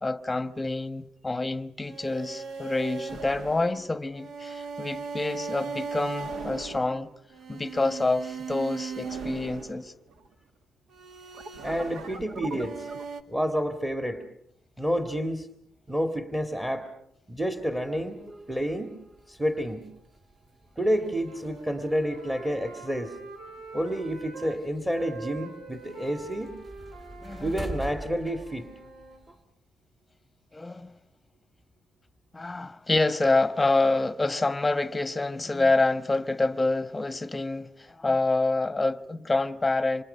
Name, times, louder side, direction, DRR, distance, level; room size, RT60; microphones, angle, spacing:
voice 1, 0.0-7.1 7.5-9.9 27.2-27.5 30.5-30.9 32.3-40.0, left 2 dB, 15° left, 1.2 m, -27 dB
sound 1, 1.8-10.3 10.9-13.2, right 5 dB, 65° right, 2.0 m, -37 dB
voice 2, 11.6-12.9 13.3-14.2 14.8-15.5 15.9-16.9 17.3-18.2 18.5-19.0 19.3-19.9 20.8-23.2 23.7-26.6 27.4-28.7, equal, 10° right, 2.2 m, -29 dB
sound 2, 17.4-29.4, right 1 dB, 30° right, 2.5 m, -46 dB
Wind instrument woodwind instrument, 21.0-24.6 24.9-29.2, right 4 dB, 90° right, 5.2 m, -45 dB
27.5 x 26.0 x 5.7 m
cardioid pair, 90°, 0 cm